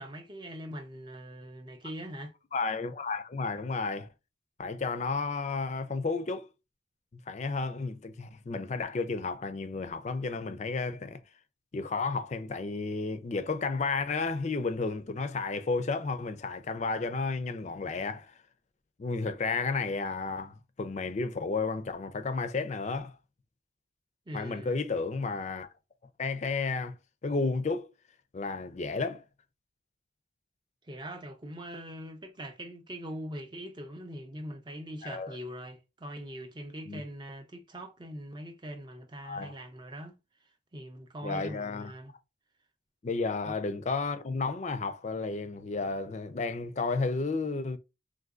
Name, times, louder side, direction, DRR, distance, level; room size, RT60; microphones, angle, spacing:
voice 1, 0.0-2.3 24.3-24.8 30.8-40.2 40.7-42.1 43.4-43.6, equal, 25° right, 0.5 m, -42 dB
voice 2, 2.5-4.1 4.6-6.5 7.3-11.2 11.7-18.4 19.0-23.1 24.3-25.7 26.2-27.0 27.2-27.9 28.3-29.2 35.0-35.4 36.9-37.0 39.2-39.5 41.2-41.9 43.0-47.8, left 4 dB, 35° left, 0.4 m, -32 dB
3.8 x 2.6 x 2.4 m
head